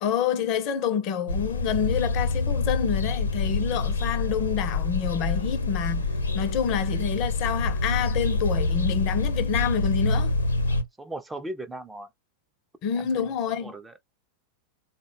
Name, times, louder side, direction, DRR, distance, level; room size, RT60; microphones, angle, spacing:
voice 1, 0.0-6.0 6.3-10.4 12.8-13.7, left 7 dB, 40° left, 0.6 m, -27 dB
sound 1, 1.3-10.8, left 3 dB, 75° left, 0.8 m, -26 dB
voice 2, 10.6-12.1 13.0-13.2 13.6-13.9, right 1 dB, 10° right, 0.5 m, -38 dB
3.8 x 2.2 x 3.4 m
figure-of-eight pair, 90°, 0 cm